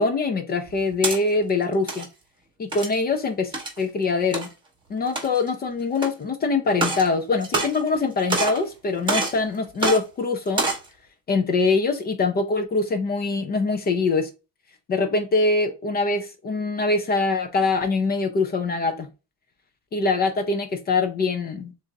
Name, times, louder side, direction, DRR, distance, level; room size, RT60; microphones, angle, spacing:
voice 1, 0.0-2.1 2.6-4.5 4.9-10.7 11.3-14.3 14.9-19.1 19.9-21.7, left 3 dB, 25° left, 0.5 m, -23 dB
sound 1, 0.7-1.2 1.7-2.1 2.7-3.0 3.5-3.8 4.3-4.5 5.0-5.5 6.0-6.1 6.7-7.1 7.4-8.0 8.3-8.6 9.1-9.4 9.8-10.0 10.5-10.9, right 3 dB, 10° right, 1.2 m, -25 dB
6.8 x 2.6 x 2.6 m
cardioid pair, 155°, 40 cm